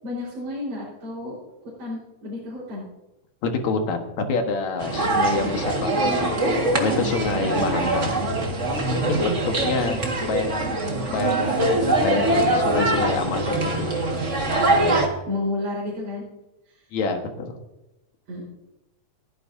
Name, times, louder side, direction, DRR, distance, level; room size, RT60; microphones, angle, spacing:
voice 1, 0.0-1.4 1.8-2.8 5.0-5.5 7.3-7.9 9.0-9.8 14.6-14.9 15.3-16.2 18.3-18.4, left 1 dB, 75° right, -8 dB, 6.2 m, -31 dB
voice 2, 3.4-6.4 6.8-8.1 9.1-9.3 9.6-14.0 16.9-17.6, left 4 dB, 65° left, 4 dB, 2.7 m, -27 dB
sound 1, 4.8-15.1, right 2 dB, 30° right, 1.6 m, -23 dB
29.5 x 10.0 x 2.7 m, 1.0 s
omnidirectional pair, 3.6 m